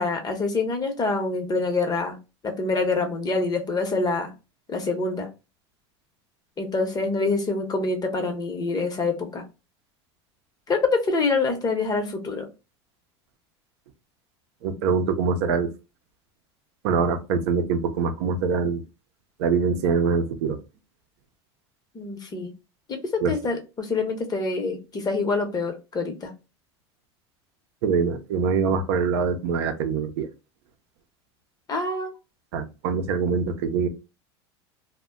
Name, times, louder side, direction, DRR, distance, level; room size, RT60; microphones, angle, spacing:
voice 1, 0.0-2.2 2.4-4.3 4.7-5.3 6.6-9.4 10.7-12.5 21.9-22.5 22.9-26.3 31.7-32.1, left 3 dB, 30° left, 5 dB, 0.8 m, -26 dB
voice 2, 14.6-15.7 16.8-18.8 19.4-20.6 23.2-23.3 27.8-30.3 32.5-33.9, right 5 dB, 75° right, 7 dB, 0.5 m, -24 dB
2.1 x 2.1 x 3.6 m, 0.29 s
hypercardioid pair, 95°, 14 cm